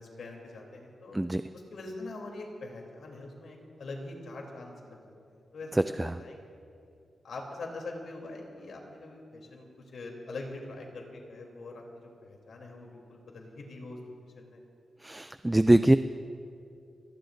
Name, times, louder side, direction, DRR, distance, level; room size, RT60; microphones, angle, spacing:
voice 1, 0.0-1.2 1.5-5.7 6.2-6.4 7.2-14.0 14.3-14.6, left 2 dB, 65° left, 0 dB, 3.1 m, -43 dB
voice 2, 5.7-6.2 15.0-16.0, right 1 dB, 10° right, 11 dB, 0.3 m, -23 dB
29.5 x 18.5 x 2.6 m, 2.5 s
wide cardioid pair, 160°, 0 cm